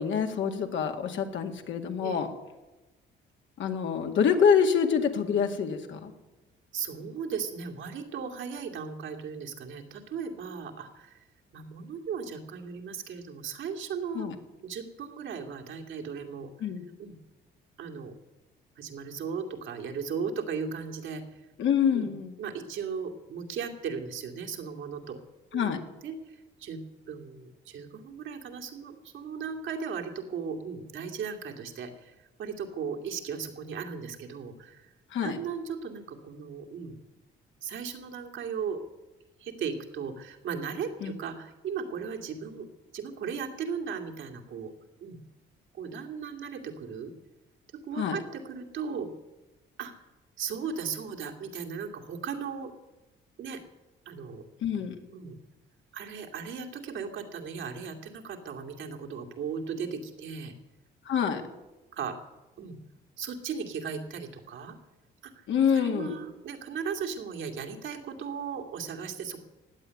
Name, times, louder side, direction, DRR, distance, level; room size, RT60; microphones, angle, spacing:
voice 1, 0.0-2.3 3.6-6.1 14.1-14.3 16.6-16.8 21.6-22.3 25.5-25.8 35.1-35.4 41.0-41.1 48.0-48.2 54.6-55.0 61.1-61.4 65.5-66.2, left 7 dB, 70° left, 4 dB, 2.1 m, -26 dB
voice 2, 6.7-11.2 11.5-14.3 14.6-16.7 17.0-17.1 17.8-18.1 18.8-21.4 21.9-22.1 22.4-25.2 25.5-25.7 26.0-26.8 27.1-32.1 32.4-34.9 35.2-37.0 37.6-38.8 39.4-42.7 42.9-44.7 45.0-45.2 45.7-47.1 47.9-49.1 49.8-49.9 50.4-52.7 53.4-53.6 54.1-54.4 55.1-55.4 55.9-60.5 61.9-62.2 62.6-62.8 63.2-64.8 65.2-65.4 65.7-69.4, right 6 dB, 75° right, 2 dB, 2.5 m, -37 dB
16.0 x 9.0 x 9.7 m, 1.1 s
cardioid pair, 90°, 20 cm